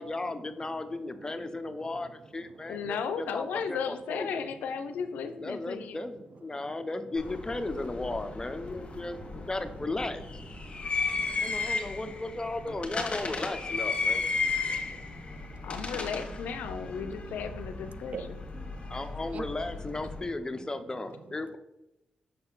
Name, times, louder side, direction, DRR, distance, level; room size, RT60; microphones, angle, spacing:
voice 1, 0.0-4.3 5.4-9.2 9.5-10.2 11.4-14.2 17.3-17.5 18.9-21.6, left 2 dB, 25° left, 8 dB, 0.7 m, -35 dB
voice 2, 2.7-6.0 12.7-12.8 15.6-18.4, left 6 dB, 90° left, 9 dB, 0.5 m, -35 dB
sound 1, 7.2-20.2, left 4 dB, 45° left, 1.3 m, -35 dB
voice 3, 10.6-12.0 14.4-15.7 17.0-17.1 18.1-19.0 19.3-19.5, right 5 dB, 60° right, 11 dB, 0.5 m, -46 dB
6.6 x 4.2 x 3.9 m, 0.93 s
cardioid pair, 55°, 3 cm